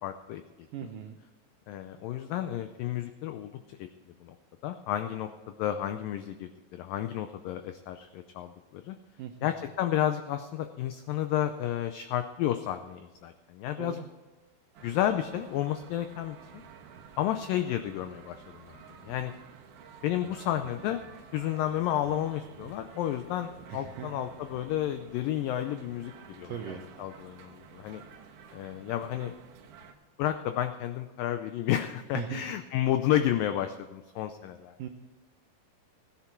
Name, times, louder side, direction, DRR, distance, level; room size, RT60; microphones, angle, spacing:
voice 1, 0.0-0.4 0.8-0.9 1.7-3.9 4.2-4.4 4.6-9.0 9.4-14.0 14.8-16.6 17.2-18.8 19.1-19.3 20.0-21.0 21.3-28.0 28.5-29.3 30.2-34.7, left 11 dB, 90° left, 9 dB, 1.9 m, -31 dB
voice 2, 0.7-1.2 9.2-9.3 13.8-14.1 23.7-24.2 26.4-26.8 32.1-32.4 34.8-34.9, right 9 dB, 80° right, 5 dB, 1.9 m, -38 dB
sound 1, 14.7-29.9, right 6 dB, 65° right, 2.4 m, -51 dB
16.0 x 10.5 x 4.5 m, 1.2 s
omnidirectional pair, 4.7 m